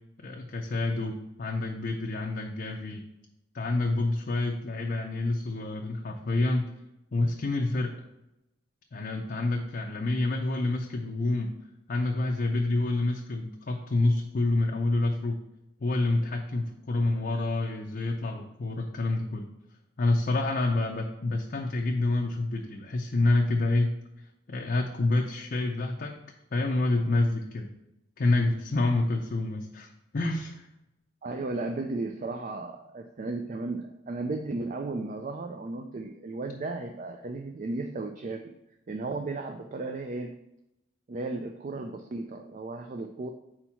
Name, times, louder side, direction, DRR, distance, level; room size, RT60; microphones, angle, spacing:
voice 1, 0.2-3.0 3.5-6.7 7.1-8.0 8.9-11.5 11.9-15.4 15.8-19.5 20.0-23.9 24.5-26.2 26.5-27.7 28.2-30.7, left 2 dB, 45° left, 1 dB, 0.5 m, -28 dB
voice 2, 31.2-38.5 38.9-40.4 41.1-43.3, right 3 dB, 40° right, 5 dB, 0.3 m, -35 dB
4.5 x 4.4 x 5.7 m, 0.88 s
head